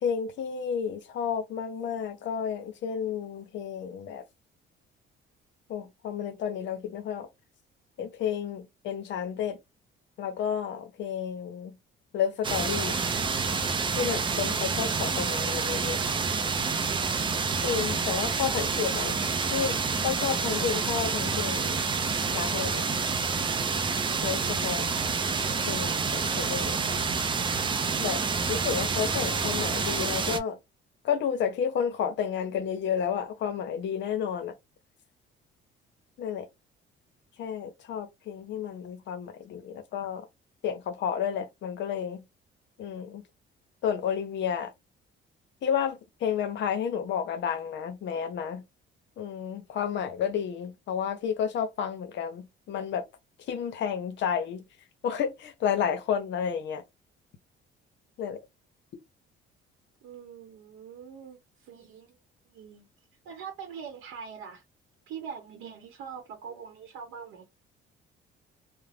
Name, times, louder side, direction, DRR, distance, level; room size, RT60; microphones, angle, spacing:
voice 1, 0.0-4.2 5.7-7.3 8.0-9.6 10.2-11.8 12.1-13.0 14.0-16.0 17.6-19.2 19.5-21.8 22.3-22.9 24.2-24.9 25.7-27.1 28.0-28.2 28.5-30.6 31.0-34.5 36.2-36.5 37.4-40.3 40.6-42.2 42.8-43.2 43.8-44.7 45.6-48.6 49.2-53.0 53.5-54.6 55.0-56.8 58.2-58.4, left 8 dB, 60° left, 0.7 m, -31 dB
sound 1, 12.4-30.4, right 5 dB, 25° right, 0.4 m, -28 dB
voice 2, 60.0-62.1 62.5-62.9 63.2-64.6 65.1-67.4, right 7 dB, 80° right, 0.8 m, -43 dB
2.5 x 2.0 x 3.3 m
cardioid pair, 130°, 21 cm